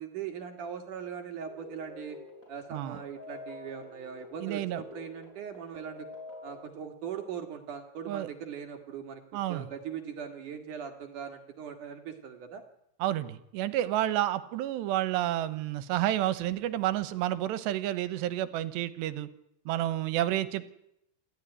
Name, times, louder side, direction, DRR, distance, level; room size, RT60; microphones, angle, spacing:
voice 1, 0.0-2.2 2.5-6.1 6.4-12.6, right 7 dB, 55° right, 7 dB, 2.6 m, -40 dB
sound 1, 1.4-6.6, left 3 dB, 15° left, 5.6 m, -47 dB
voice 2, 4.4-4.8 8.1-8.3 9.3-9.7 13.0-19.3 19.7-20.6, right 13 dB, 80° right, 15 dB, 3.1 m, -30 dB
28.0 x 13.5 x 10.0 m, 0.78 s
omnidirectional pair, 5.2 m